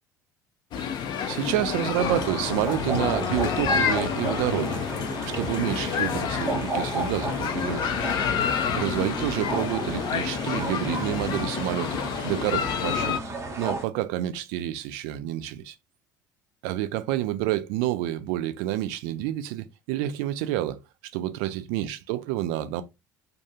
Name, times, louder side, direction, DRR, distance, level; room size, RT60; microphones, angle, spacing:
sound 1, 0.7-13.2, left 7 dB, 45° left, 0.4 m, -29 dB
voice 1, 1.3-4.8 5.3-8.0 8.7-13.3 13.6-15.8 16.6-20.8 21.1-22.8, right 13 dB, 60° right, 0.4 m, -29 dB
sound 2, 1.9-13.8, right 3 dB, 25° right, 0.7 m, -34 dB
2.6 x 2.2 x 2.7 m
figure-of-eight pair, 65°, 10 cm